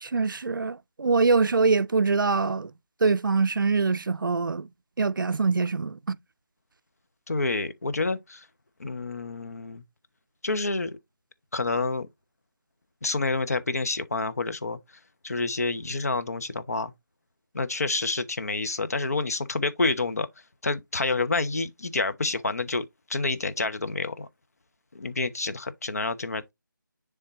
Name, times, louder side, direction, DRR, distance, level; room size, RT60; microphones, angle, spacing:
voice 1, 0.0-2.7 3.0-4.7 5.0-6.2, right 4 dB, 70° right, 0.4 m, -24 dB
voice 2, 7.3-8.5 8.8-9.8 10.4-11.0 11.5-12.1 13.0-14.8 15.2-16.9 17.5-20.3 20.6-24.3 24.9-26.5, left 3 dB, 45° left, 0.7 m, -28 dB
10.0 x 3.6 x 2.6 m
figure-of-eight pair, 170°, 11 cm